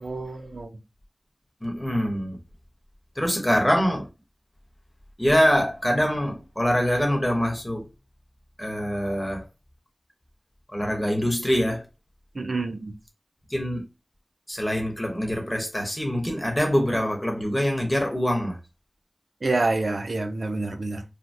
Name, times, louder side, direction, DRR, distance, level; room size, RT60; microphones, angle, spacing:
voice 1, 0.0-0.7 12.3-12.9 19.4-21.0, right 2 dB, 90° right, 0.4 m, -27 dB
voice 2, 1.6-2.4 3.2-4.1 5.2-7.9 8.6-9.4 10.7-11.8 13.5-13.8 14.5-18.6, equal, 15° left, 1.0 m, -24 dB
3.3 x 2.1 x 2.6 m
wide cardioid pair, 60°, 0 cm